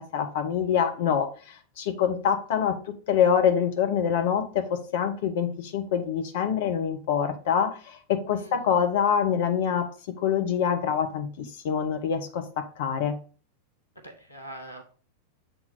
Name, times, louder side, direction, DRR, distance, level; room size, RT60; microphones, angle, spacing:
voice 1, 0.0-2.8 3.1-9.9 10.2-13.2, left 8 dB, 55° left, 6 dB, 1.1 m, -25 dB
voice 2, 8.3-8.7 13.9-14.8, equal, 85° left, 5 dB, 1.3 m, -43 dB
7.6 x 4.0 x 3.8 m, 0.39 s
figure-of-eight pair, 90°, 0 cm